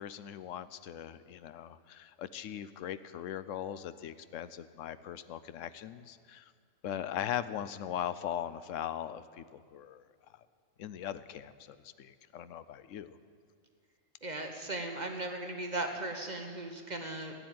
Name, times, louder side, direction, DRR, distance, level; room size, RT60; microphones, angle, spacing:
voice 1, 0.0-6.4 6.8-10.0 10.8-13.2, left 10 dB, 75° left, 14 dB, 1.0 m, -40 dB
voice 2, 14.2-17.3, right 2 dB, 35° right, 4 dB, 1.3 m, -37 dB
14.5 x 9.7 x 9.3 m, 2.1 s
omnidirectional pair, 1.4 m